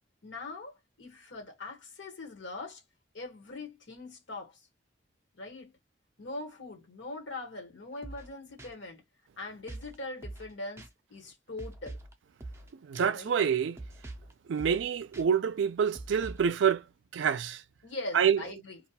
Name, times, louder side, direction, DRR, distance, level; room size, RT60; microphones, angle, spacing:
voice 1, 0.2-2.8 3.1-4.7 5.3-5.7 6.2-9.0 9.4-12.0 13.1-13.4 17.8-18.8, left 2 dB, 75° left, 1.3 m, -42 dB
sound 1, 8.0-8.3 8.6-8.7 9.7-9.9 10.2-10.5 10.8-10.9 11.6-12.1 12.4-12.7 12.9-13.1 13.8-14.3 14.6-14.8 15.1-15.2 15.9-16.5, right 2 dB, 15° right, 0.4 m, -44 dB
voice 2, 12.8-13.8 14.5-16.8 17.1-17.6 18.1-18.4, right 7 dB, 80° right, 0.4 m, -27 dB
2.4 x 2.3 x 2.8 m
head